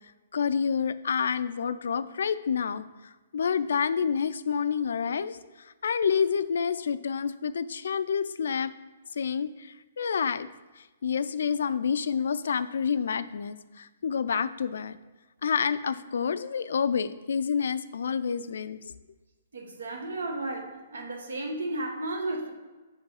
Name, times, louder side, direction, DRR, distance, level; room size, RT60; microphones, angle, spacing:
voice 1, 0.3-2.8 3.3-8.7 9.1-10.5 10.8-15.0 15.4-18.9, left 6 dB, 75° left, 14 dB, 0.3 m, -28 dB
voice 2, 19.5-22.5, right 2 dB, 85° right, 3 dB, 1.2 m, -33 dB
5.2 x 3.7 x 4.8 m, 1.3 s
hypercardioid pair, 155°, 0 cm